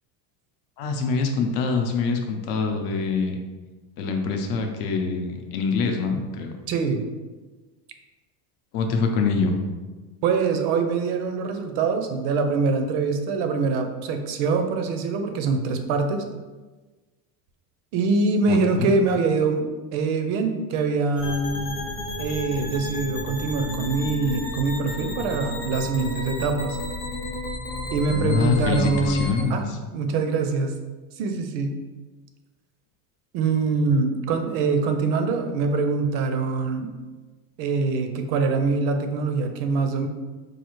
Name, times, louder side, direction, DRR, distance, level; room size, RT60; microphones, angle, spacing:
voice 1, 0.8-3.4 4.0-6.6 8.7-9.6 18.5-18.9 28.1-29.8, left 4 dB, 65° left, 4 dB, 0.7 m, -25 dB
voice 2, 6.7-7.0 10.2-16.2 17.9-19.7 19.9-21.8 22.2-26.8 27.9-30.7 31.2-31.8 33.3-36.9 37.6-40.1, right 4 dB, 60° right, 6 dB, 0.5 m, -24 dB
sound 1, 21.2-29.4, left 2 dB, 20° left, 0.6 m, -32 dB
4.7 x 2.4 x 3.0 m, 1.3 s
cardioid pair, 175°, 45 cm